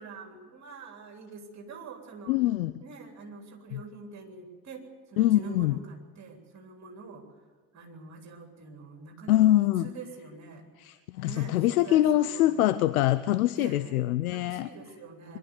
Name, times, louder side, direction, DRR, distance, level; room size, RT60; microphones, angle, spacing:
voice 1, 0.0-2.4 2.8-7.2 7.7-10.7 11.2-12.8 13.5-13.9 14.3-15.4, right 4 dB, 35° right, 3 dB, 3.5 m, -45 dB
voice 2, 2.3-2.8 3.7-3.8 5.2-5.8 9.3-9.9 10.8-14.7, left 14 dB, 70° left, 13 dB, 0.7 m, -24 dB
22.5 x 12.0 x 9.5 m, 1.4 s
figure-of-eight pair, 65°, 46 cm